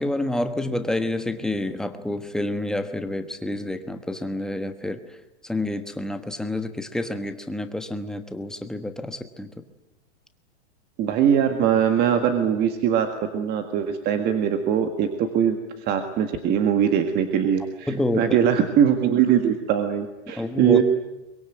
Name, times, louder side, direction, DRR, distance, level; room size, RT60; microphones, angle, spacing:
voice 1, 0.0-5.0 5.4-9.5 17.9-18.4 20.4-20.8, left 1 dB, ahead, 8 dB, 1.2 m, -28 dB
voice 2, 11.0-13.1 13.3-15.6 15.9-20.8, right 9 dB, 30° right, 7 dB, 1.8 m, -21 dB
23.0 x 22.0 x 9.2 m, 0.98 s
supercardioid pair, 150°, 35 cm